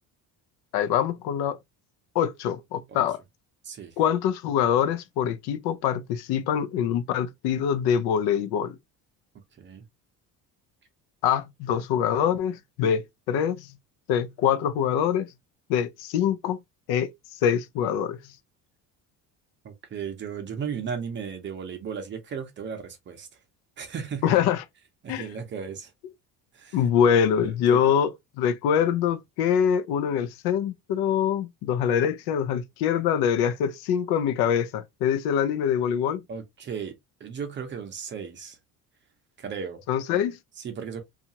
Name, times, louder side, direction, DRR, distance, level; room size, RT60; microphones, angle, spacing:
voice 1, 0.7-1.6 2.1-3.2 4.0-8.8 11.2-13.7 14.1-15.3 15.7-16.6 16.9-17.1 17.4-18.2 24.2-24.6 25.1-25.3 26.7-28.1 28.4-36.2 39.9-40.4, left 8 dB, 85° left, 0.5 m, -24 dB
voice 2, 3.6-3.9 9.6-9.8 19.6-23.3 23.8-24.4 25.0-25.9 26.5-26.8 27.4-27.8 36.3-36.9 37.2-38.6 39.4-39.8 40.6-41.0, right 6 dB, 30° right, 0.6 m, -35 dB
2.8 x 2.4 x 2.7 m
cardioid pair, 165°, 38 cm